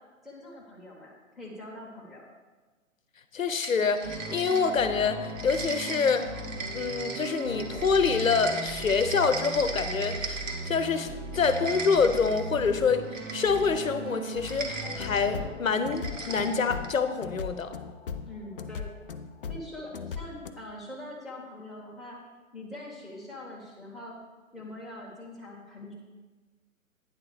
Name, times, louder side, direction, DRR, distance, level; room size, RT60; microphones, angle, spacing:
voice 1, 0.2-2.2 18.3-18.9 19.5-22.2 22.5-24.2 24.5-25.9, left 1 dB, ahead, -4 dB, 0.9 m, -43 dB
voice 2, 3.3-6.3 6.7-13.0 13.3-17.7, left 5 dB, 75° left, 10 dB, 0.8 m, -26 dB
sound 1, 3.6-4.9 5.2-10.8 11.2-12.5 13.1-13.7 14.4-15.3 15.9-17.0, right 4 dB, 70° right, 1.5 m, -38 dB
sound 2, 4.0-15.5, right 2 dB, 20° right, 0.6 m, -38 dB
sound 3, 14.8-20.5, left 6 dB, 45° left, 0.4 m, -38 dB
9.6 x 3.8 x 6.5 m, 1.3 s
figure-of-eight pair, 130°, 41 cm